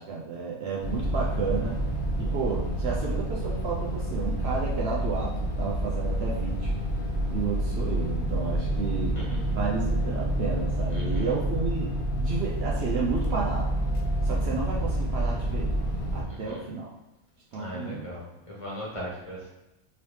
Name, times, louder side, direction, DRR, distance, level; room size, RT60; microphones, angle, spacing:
voice 1, 0.0-1.8 2.2-6.7 7.3-9.2 9.5-13.7 14.2-15.8 16.1-16.9 17.5-18.1, right 5 dB, 60° right, -3 dB, 0.8 m, -32 dB
sound 1, 0.8-16.2, right 1 dB, 50° left, 0.8 m, -28 dB
voice 2, 10.9-11.3 16.3-16.7 17.5-19.5, equal, 25° left, -5 dB, 1.0 m, -39 dB
3.9 x 3.1 x 3.2 m, 0.97 s
omnidirectional pair, 1.3 m